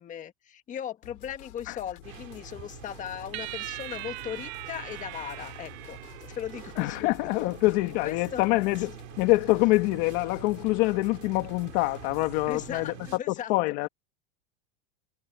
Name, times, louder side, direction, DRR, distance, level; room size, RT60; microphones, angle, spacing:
voice 1, 0.0-7.1 7.4-7.5 8.0-8.4 12.5-13.5, left 9 dB, 20° left, 1.4 m, -38 dB
sound 1, 1.0-12.9, left 17 dB, 75° left, 5.5 m, -50 dB
sound 2, 2.0-13.2, right 17 dB, 75° right, 6.6 m, -46 dB
sound 3, 3.3-6.9, right 22 dB, 50° right, 1.9 m, -40 dB
voice 2, 6.8-12.9 13.3-13.9, left 22 dB, 45° left, 1.7 m, -25 dB
supercardioid pair, 165°, 39 cm